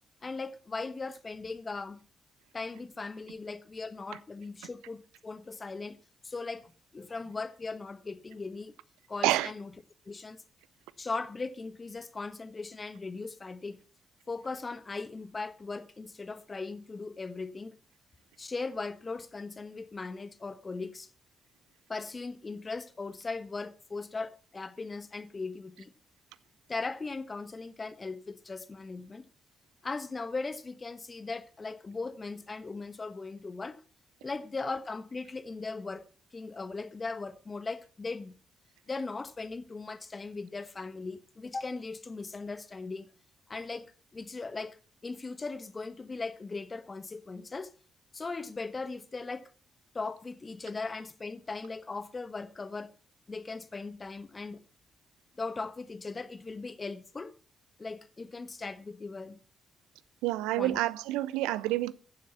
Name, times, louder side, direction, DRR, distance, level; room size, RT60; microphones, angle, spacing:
voice 1, 0.2-2.0 2.5-6.0 6.2-8.7 9.1-9.7 10.0-10.4 11.0-13.8 14.3-17.8 18.4-21.1 21.9-25.9 26.7-29.3 29.8-33.8 34.2-36.1 36.3-38.4 38.9-43.1 43.5-44.8 45.0-47.7 48.1-49.5 49.9-52.9 53.3-54.6 55.4-57.3 57.8-59.4 60.6-60.8, left 3 dB, 35° left, 1.4 m, -38 dB
voice 2, 60.2-61.9, right 16 dB, 75° right, 0.5 m, -28 dB
15.0 x 7.3 x 5.8 m
hypercardioid pair, 40°, 0 cm